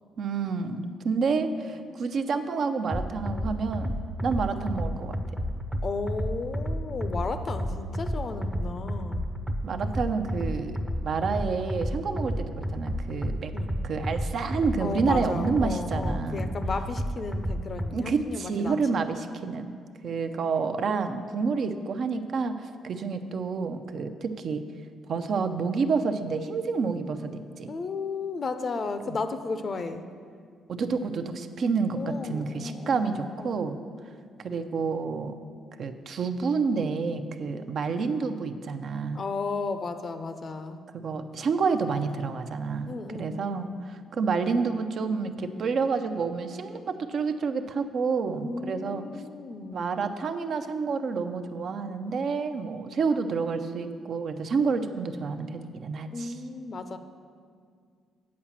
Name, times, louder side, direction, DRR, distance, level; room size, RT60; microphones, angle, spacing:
voice 1, 0.2-3.9 4.2-5.2 9.6-10.8 11.0-13.5 13.8-16.5 17.9-19.8 20.0-24.6 25.1-27.7 29.1-29.2 30.7-33.8 34.4-35.3 35.8-39.3 40.9-49.0 49.7-56.3, right 5 dB, 60° right, 8 dB, 0.5 m, -29 dB
sound 1, 2.9-17.9, equal, 5° right, 0.6 m, -31 dB
voice 2, 5.8-9.3 13.5-13.8 14.8-19.0 27.7-30.1 32.0-33.7 39.1-40.8 42.9-43.8 48.4-49.9 56.1-57.0, left 4 dB, 45° left, 9 dB, 0.6 m, -34 dB
8.5 x 4.8 x 7.3 m, 2.1 s
cardioid pair, 90°, 0 cm